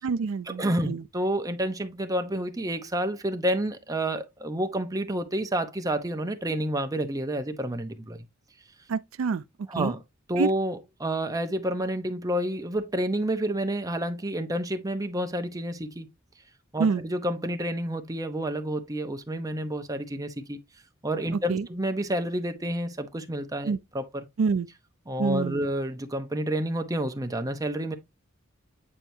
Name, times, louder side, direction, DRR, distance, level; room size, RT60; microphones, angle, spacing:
voice 1, 0.0-1.0 8.9-9.4 9.8-9.9 10.4-10.5 16.8-17.0 21.3-21.7 23.7-23.8 24.4-24.7 25.2-25.7, right 5 dB, 80° right, 0.4 m, -27 dB
voice 2, 0.6-8.2 9.7-10.0 10.3-16.1 16.7-20.6 21.0-24.2 25.1-28.0, right 1 dB, 15° right, 0.8 m, -29 dB
8.7 x 4.5 x 2.7 m
head